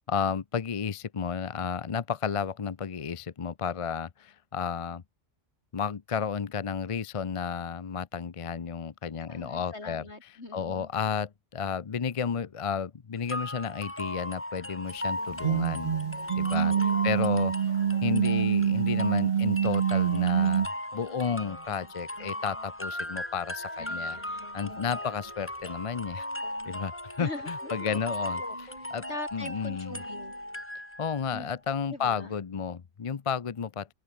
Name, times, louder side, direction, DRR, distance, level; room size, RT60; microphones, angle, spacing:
voice 1, 0.1-5.0 5.7-10.1 10.5-16.0 16.3-16.7 17.0-17.5 18.0-24.2 24.5-26.3 26.6-28.4 28.9-29.0 29.3-30.0 31.0-33.9, left 6 dB, 35° left, 0.5 m, -32 dB
voice 2, 9.3-10.9 16.6-17.2 23.8-25.3 27.2-28.0 28.3-30.3 31.3-31.5 31.9-32.3, left 2 dB, 60° left, 4.4 m, -43 dB
sound 1, 13.3-31.2, left 1 dB, 10° left, 2.4 m, -37 dB
sound 2, 15.0-30.6, right 1 dB, 25° right, 7.1 m, -51 dB
sound 3, 15.3-20.7, right 8 dB, 45° right, 0.6 m, -26 dB
open air
omnidirectional pair, 1.3 m